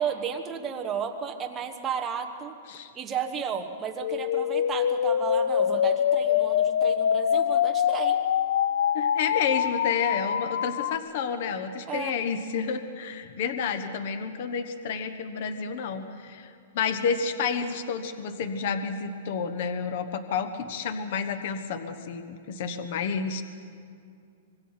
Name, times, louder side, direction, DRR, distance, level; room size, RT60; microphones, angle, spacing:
voice 1, 0.0-2.5 2.9-8.2 11.9-12.2, right 7 dB, 15° right, 5 dB, 1.3 m, -33 dB
sound 1, 4.0-11.0, left 9 dB, 70° left, 0.6 m, -25 dB
voice 2, 8.9-23.4, left 6 dB, 50° left, 9 dB, 1.2 m, -30 dB
25.5 x 21.0 x 5.8 m, 2.3 s
supercardioid pair, 165°, 0 cm